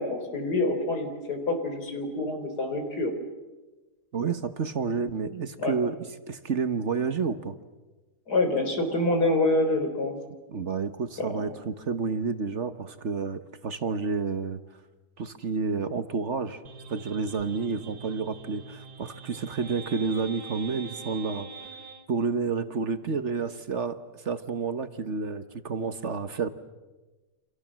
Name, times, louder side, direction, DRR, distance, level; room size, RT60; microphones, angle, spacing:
voice 1, 0.0-3.1 5.6-5.7 8.3-10.2 11.2-11.3, left 2 dB, 80° left, 6 dB, 4.5 m, -26 dB
voice 2, 4.1-6.0 6.3-7.5 10.5-14.6 15.2-16.6 16.9-21.5 22.1-26.5, right 5 dB, 50° right, 11 dB, 1.3 m, -30 dB
sound 1, 16.6-22.1, right 5 dB, 85° right, 2.5 m, -44 dB
30.0 x 26.5 x 7.5 m, 1.2 s
omnidirectional pair, 1.7 m